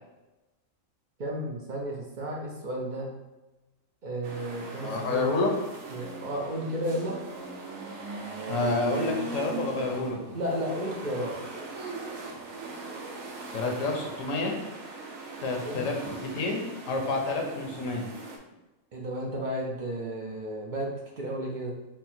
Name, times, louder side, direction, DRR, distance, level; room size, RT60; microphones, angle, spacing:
voice 1, 1.2-3.2 4.0-5.4 5.9-7.2 10.3-11.4 15.6-15.8 18.9-21.8, right 1 dB, 50° right, -2 dB, 0.6 m, -33 dB
sound 1, 4.2-18.4, right 3 dB, 75° right, 1.0 m, -39 dB
voice 2, 4.8-5.5 8.5-10.2 13.5-14.6 15.4-18.0, left 3 dB, 70° left, 1 dB, 1.1 m, -29 dB
4.3 x 2.1 x 4.3 m, 1.0 s
omnidirectional pair, 1.4 m